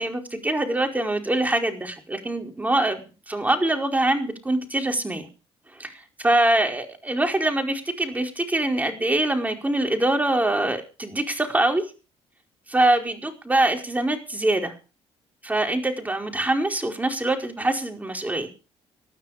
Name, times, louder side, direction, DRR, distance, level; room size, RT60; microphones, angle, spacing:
voice 1, 0.0-3.0 3.3-5.3 5.7-11.8 12.7-14.7 15.4-18.5, right 1 dB, 15° right, 4 dB, 4.9 m, -24 dB
19.0 x 12.5 x 5.1 m, 0.34 s
supercardioid pair, 75°, 11 cm